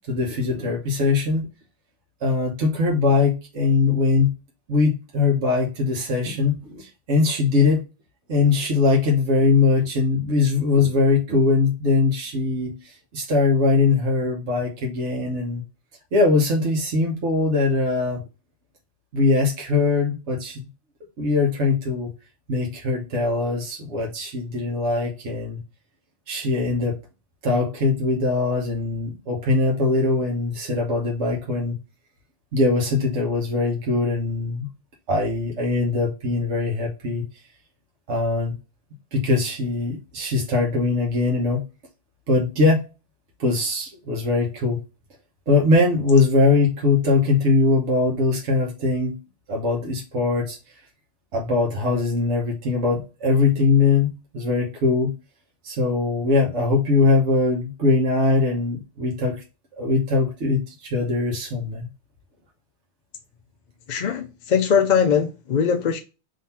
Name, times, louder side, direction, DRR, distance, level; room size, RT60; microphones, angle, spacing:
voice 1, 0.1-1.5 2.2-4.3 4.7-7.8 8.3-15.6 16.1-18.2 19.1-20.6 21.2-22.1 22.5-25.6 26.3-27.0 27.4-31.8 32.5-34.7 35.1-37.2 38.1-38.5 39.1-41.6 42.3-42.8 43.4-44.8 45.5-49.1 49.5-50.6 51.3-55.1 55.6-59.4 59.8-61.9, left 3 dB, 85° right, 1.3 m, -21 dB
voice 2, 63.9-66.0, left 7 dB, 55° left, 0.5 m, -21 dB
3.8 x 3.0 x 4.1 m
omnidirectional pair, 1.2 m